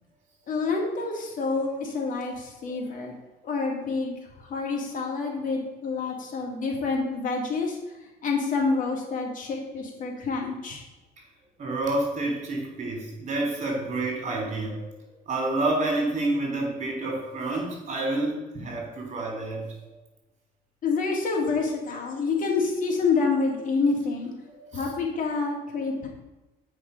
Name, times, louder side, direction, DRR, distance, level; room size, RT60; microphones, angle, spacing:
voice 1, 0.5-3.1 3.4-7.8 8.2-10.8 20.8-24.3 24.7-26.1, left 4 dB, 50° left, 0 dB, 2.2 m, -27 dB
voice 2, 11.6-19.6 24.4-24.9, right 2 dB, 45° right, 1 dB, 3.1 m, -29 dB
8.3 x 5.3 x 5.2 m, 1.1 s
cardioid pair, 110°, 17 cm